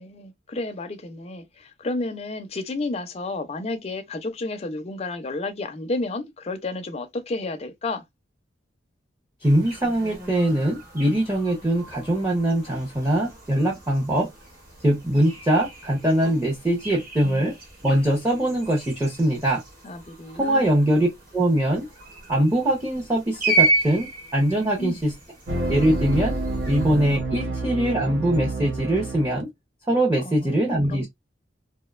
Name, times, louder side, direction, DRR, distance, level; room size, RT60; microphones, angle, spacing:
voice 1, 0.0-8.0 14.2-14.3 17.2-17.5 19.8-20.7 24.8-25.0 27.4-27.5 30.2-31.1, left 2 dB, 35° left, 0.4 m, -32 dB
voice 2, 9.4-14.3 14.8-17.6 17.8-19.6 20.3-21.1 21.3-21.9 22.3-25.1 25.7-26.4 26.7-29.5 29.9-31.1, right 1 dB, 15° right, 0.6 m, -22 dB
sound 1, 9.4-27.2, right 2 dB, 50° right, 1.0 m, -33 dB
sound 2, 25.5-29.4, right 2 dB, 70° right, 0.7 m, -28 dB
2.6 x 2.1 x 2.3 m
head